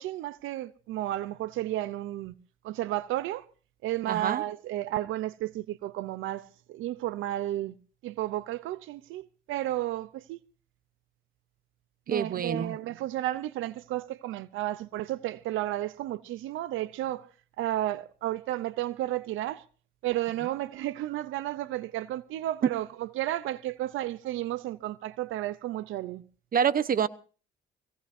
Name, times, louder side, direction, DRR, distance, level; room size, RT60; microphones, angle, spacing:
voice 1, 0.0-2.3 2.6-3.5 3.8-7.8 8.0-10.4 12.1-17.3 17.6-19.6 20.0-26.2, right 14 dB, 90° right, 0.7 m, -32 dB
voice 2, 4.1-4.4 12.1-12.8 26.5-27.1, right 7 dB, 45° right, 0.9 m, -26 dB
23.5 x 17.0 x 2.7 m
cardioid pair, 90°, 20 cm